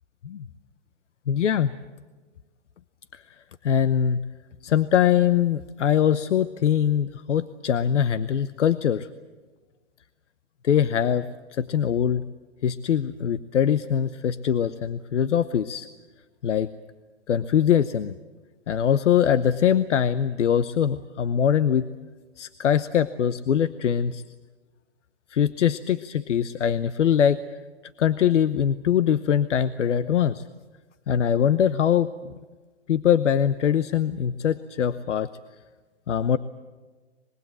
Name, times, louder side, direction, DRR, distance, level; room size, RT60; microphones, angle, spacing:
voice 1, 1.3-1.8 3.1-3.2 3.6-4.2 4.6-9.1 10.6-11.2 11.5-12.2 12.6-15.9 16.4-16.7 17.3-18.2 18.7-21.9 22.4-24.2 25.3-27.4 28.0-30.4 31.1-32.3 32.9-35.3 36.1-36.4, left 9 dB, 80° left, 14 dB, 0.9 m, -22 dB
24.5 x 22.0 x 7.5 m, 1.3 s
hypercardioid pair, 180°, 35 cm